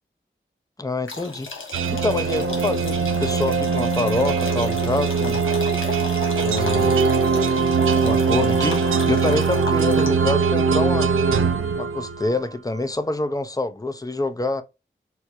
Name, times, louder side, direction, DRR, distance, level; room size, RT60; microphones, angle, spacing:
voice 1, 0.8-5.4 6.4-6.9 8.0-11.1 11.8-14.6, left 2 dB, 15° left, 0.6 m, -26 dB
sound 1, 1.1-10.4, left 3 dB, 80° left, 1.2 m, -35 dB
sound 2, 1.7-12.4, right 5 dB, 80° right, 0.5 m, -21 dB
4.3 x 2.2 x 2.6 m
cardioid pair, 40°, 20 cm